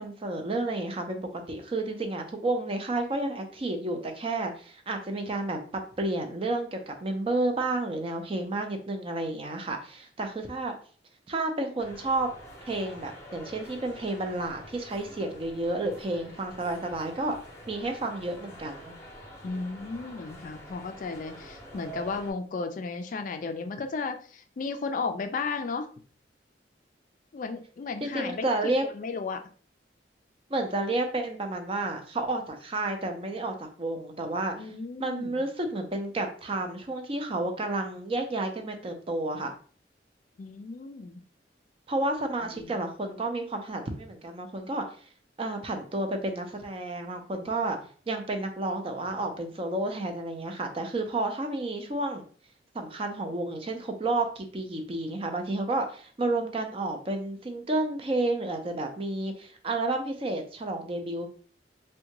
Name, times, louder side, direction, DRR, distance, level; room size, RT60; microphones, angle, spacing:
voice 1, 0.0-5.6 6.0-10.7 11.3-12.3 12.6-17.4 17.7-18.9 28.0-28.9 30.5-34.7 35.0-39.5 41.9-44.9 45.4-47.8 48.1-52.2 52.7-61.3, right 2 dB, 30° right, 5 dB, 0.5 m, -31 dB
sound 1, 11.8-22.3, right 1 dB, 15° left, 0.7 m, -47 dB
voice 2, 19.4-25.9 27.3-29.4 34.6-35.4 40.4-41.2 42.5-42.7, left 4 dB, 45° left, 7 dB, 0.3 m, -34 dB
3.6 x 2.2 x 2.8 m, 0.42 s
head